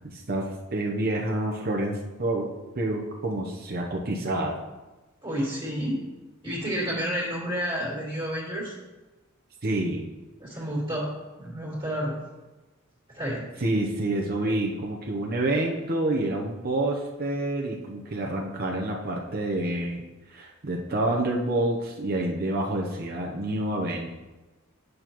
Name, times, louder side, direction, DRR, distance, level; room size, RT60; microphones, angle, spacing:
voice 1, 0.1-0.4 0.7-2.5 2.8-4.6 9.6-10.1 13.6-20.0 20.3-24.1, right 1 dB, 50° right, 0 dB, 0.8 m, -28 dB
voice 2, 5.2-6.0 6.4-8.7 10.4-11.1 11.4-12.2 13.1-13.5, equal, 25° right, -7 dB, 2.3 m, -30 dB
9.1 x 6.4 x 3.0 m, 1.1 s
head